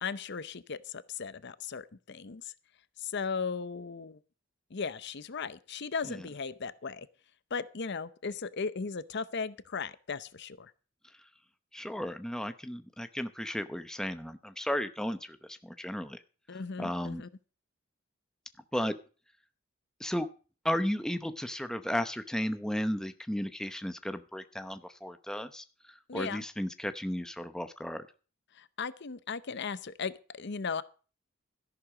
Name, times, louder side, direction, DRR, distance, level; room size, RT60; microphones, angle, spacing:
voice 1, 0.0-2.5 3.0-4.2 4.7-7.1 7.5-10.7 16.5-17.3 26.1-26.4 28.5-30.8, left 5 dB, 55° left, 15 dB, 0.7 m, -37 dB
voice 2, 11.7-16.2 16.8-17.2 18.7-19.0 20.0-20.3 20.6-28.1, equal, 5° left, 9 dB, 0.7 m, -34 dB
13.5 x 11.0 x 4.9 m, 0.37 s
head